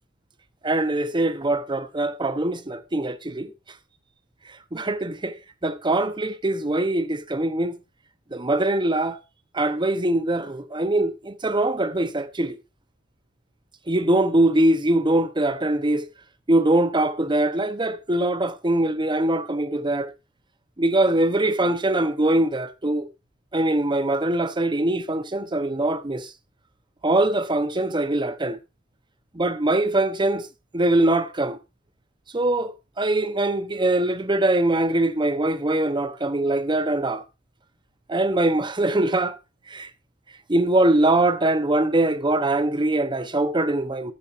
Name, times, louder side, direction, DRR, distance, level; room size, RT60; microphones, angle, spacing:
voice 1, 0.6-3.5 4.7-5.3 5.6-7.8 8.3-9.2 9.5-12.6 13.9-16.1 16.5-20.1 20.8-23.1 23.5-26.3 27.0-28.6 29.3-30.5 30.7-31.6 32.3-37.2 38.1-39.4 39.7-39.9 40.5-44.1, right 1 dB, 25° right, 0.9 m, -22 dB
13.0 x 12.5 x 2.6 m
head